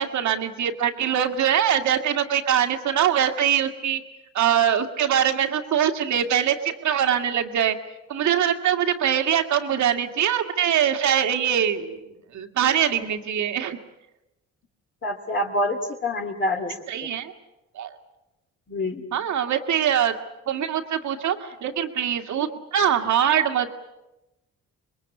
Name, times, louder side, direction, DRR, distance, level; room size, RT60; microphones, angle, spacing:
voice 1, 0.0-4.0 4.3-7.8 8.1-12.0 12.3-13.8 16.9-17.3 17.7-17.9 19.1-20.1 20.5-23.7, right 9 dB, 70° right, 6 dB, 2.3 m, -23 dB
voice 2, 15.0-16.8 18.7-19.0, left 1 dB, 40° left, 0 dB, 2.6 m, -26 dB
26.5 x 21.5 x 8.4 m, 0.98 s
cardioid pair, 90°, 30 cm